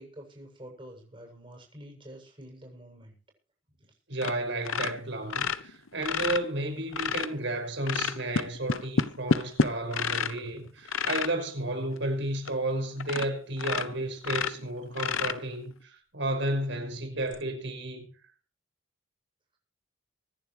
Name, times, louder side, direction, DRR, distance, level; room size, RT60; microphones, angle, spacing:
voice 1, 0.0-3.1 3.8-3.9, right 1 dB, 25° right, 7.6 m, -47 dB
voice 2, 4.1-18.0, right 1 dB, 65° right, 5.8 m, -32 dB
sound 1, 4.2-4.4 4.6-7.3 7.8-10.4 10.8-11.3 12.0-12.1 12.4-12.5 13.0-13.3 13.6-15.7 17.2-17.4, left 5 dB, 85° left, 0.9 m, -29 dB
25.0 x 11.0 x 3.2 m
head